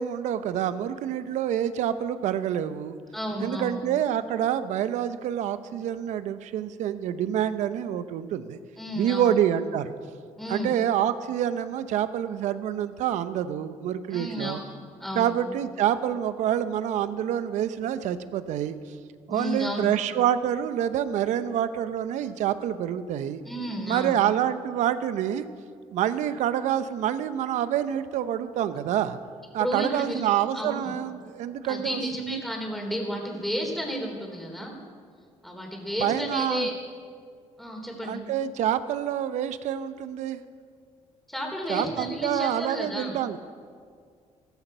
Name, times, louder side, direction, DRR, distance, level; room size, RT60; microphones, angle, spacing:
voice 1, 0.0-3.0 3.4-8.6 8.9-9.9 10.5-14.6 15.1-18.8 19.3-23.4 23.8-25.4 25.9-29.2 29.5-32.4 36.0-36.7 38.0-40.4 41.7-43.4, right 10 dB, 75° right, 12 dB, 0.8 m, -27 dB
voice 2, 3.1-3.7 8.8-9.3 10.4-10.8 14.1-14.6 15.0-15.3 19.3-19.9 23.5-24.2 29.6-30.3 30.5-30.9 31.7-34.7 35.4-36.7 37.6-38.2 41.3-43.2, equal, ahead, 1 dB, 3.4 m, -32 dB
14.5 x 14.0 x 5.6 m, 2.1 s
cardioid pair, 90°, 12 cm